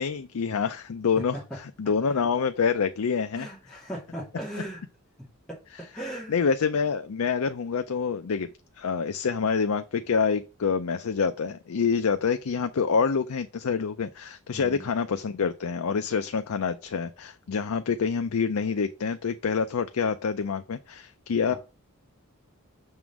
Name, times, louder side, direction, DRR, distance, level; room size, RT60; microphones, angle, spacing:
voice 1, 0.0-1.4 1.8-3.5 6.3-8.5 8.8-21.5, left 5 dB, 85° left, 0.5 m, -26 dB
voice 2, 3.3-4.8 5.2-6.3 14.5-14.9 21.4-21.6, right 1 dB, ahead, 2.5 m, -38 dB
6.1 x 3.7 x 5.9 m
head